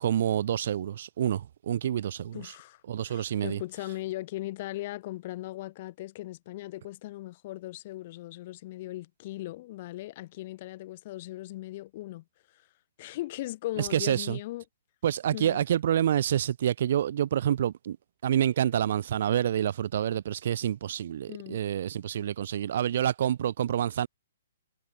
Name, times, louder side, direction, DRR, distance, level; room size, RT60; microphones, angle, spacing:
voice 1, 0.0-2.5 2.9-3.6 13.8-14.4 15.0-18.0 18.2-24.1, right 10 dB, 40° right, 0.3 m, -27 dB
voice 2, 2.3-12.2 12.5-12.7 13.0-14.6 15.3-15.6 21.3-21.6, left 17 dB, 30° left, 1.3 m, -38 dB
hypercardioid pair, 180°, 0 cm